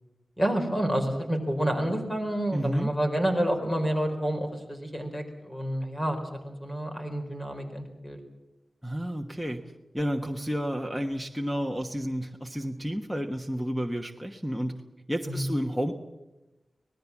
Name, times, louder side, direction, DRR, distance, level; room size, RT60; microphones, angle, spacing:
voice 1, 0.4-8.2 15.3-15.4, right 1 dB, 15° left, 5 dB, 4.6 m, -29 dB
voice 2, 2.5-2.9 8.8-14.8 15.1-15.9, equal, ahead, 5 dB, 1.3 m, -31 dB
25.0 x 19.0 x 7.3 m, 1.0 s
wide cardioid pair, 105°, 0 cm